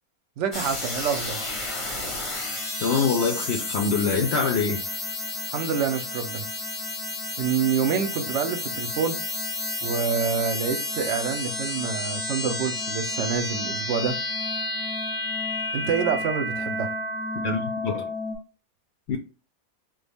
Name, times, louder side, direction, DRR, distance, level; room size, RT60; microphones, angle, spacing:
voice 1, 0.4-1.5 5.5-6.5 7.4-9.2 9.8-14.2 15.7-16.9, right 6 dB, 65° right, 0.8 m, -27 dB
sound 1, 0.5-18.4, left 2 dB, 30° left, 0.7 m, -31 dB
voice 2, 2.8-4.8 17.4-18.1 19.1-19.2, left 5 dB, 65° left, 0.6 m, -24 dB
3.3 x 2.2 x 3.4 m
omnidirectional pair, 1.5 m